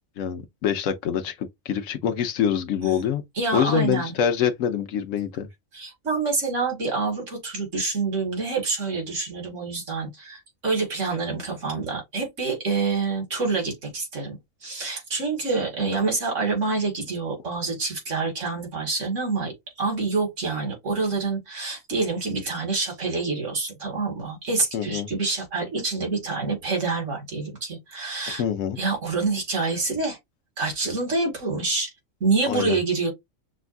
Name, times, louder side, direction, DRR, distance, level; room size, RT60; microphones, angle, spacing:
voice 1, 0.2-3.2 3.5-5.5 24.7-25.1 28.4-28.8 32.5-32.8, left 8 dB, 75° left, 1.1 m, -25 dB
voice 2, 3.4-4.1 5.7-28.4 28.8-30.2 30.6-31.9 32.2-33.1, right 3 dB, 70° right, 2.2 m, -27 dB
6.2 x 2.3 x 2.5 m
omnidirectional pair, 1.4 m